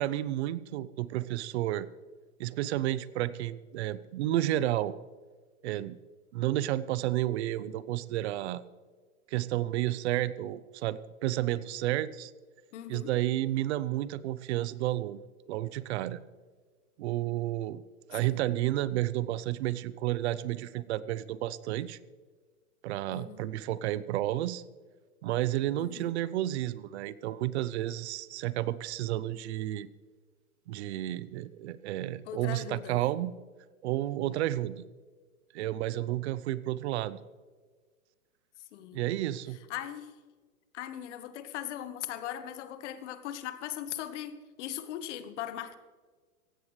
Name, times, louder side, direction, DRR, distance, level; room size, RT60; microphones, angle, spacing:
voice 1, 0.0-1.9 2.4-4.9 5.6-6.0 6.3-8.6 9.3-12.3 12.9-15.2 15.5-16.2 17.0-17.8 18.1-22.0 22.8-24.6 25.2-29.9 30.7-33.3 33.8-34.8 35.5-37.2 38.9-39.6, right 14 dB, 45° right, 17 dB, 0.7 m, -31 dB
voice 2, 12.7-13.1 18.1-18.4 23.1-23.5 25.8-26.1 32.3-33.1 38.7-39.1 39.7-40.2 40.7-45.8, left 11 dB, 50° left, 11 dB, 1.3 m, -39 dB
17.5 x 15.5 x 3.2 m, 1.5 s
hypercardioid pair, 135°, 45 cm